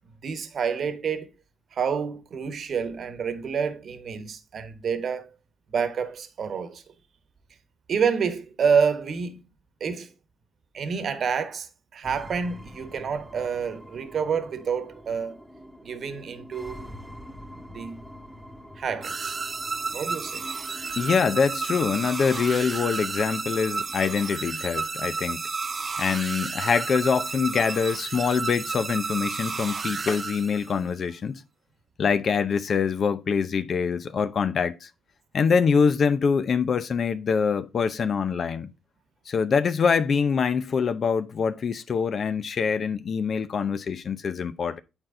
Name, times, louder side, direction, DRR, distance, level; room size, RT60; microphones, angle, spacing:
voice 1, 0.2-1.3 1.7-5.3 5.7-6.8 7.9-9.4 9.8-10.1 10.7-15.4 15.8-16.9 17.7-18.0 18.8-19.3 19.9-20.4, right 6 dB, 55° right, 1.1 m, -28 dB
sound 1, 12.0-26.0, equal, ahead, 1.4 m, -46 dB
sound 2, 19.0-30.9, right 4 dB, 35° right, 0.4 m, -32 dB
voice 2, 21.0-25.4 26.0-31.4 32.0-34.9 35.3-38.7 39.3-44.8, left 6 dB, 50° left, 0.6 m, -24 dB
8.8 x 4.4 x 3.8 m
cardioid pair, 90°, 0 cm